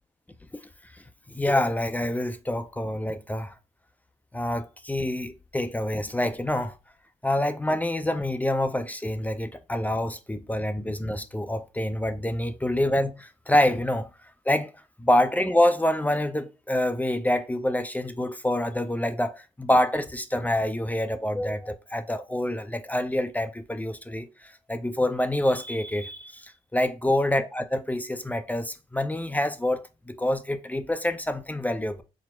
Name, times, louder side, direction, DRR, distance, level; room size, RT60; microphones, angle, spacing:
voice 1, 1.3-3.5 4.3-6.8 7.2-14.1 14.5-14.7 15.0-32.0, left 1 dB, 10° left, 0.5 m, -26 dB
4.2 x 2.1 x 4.3 m
supercardioid pair, 70°, 15 cm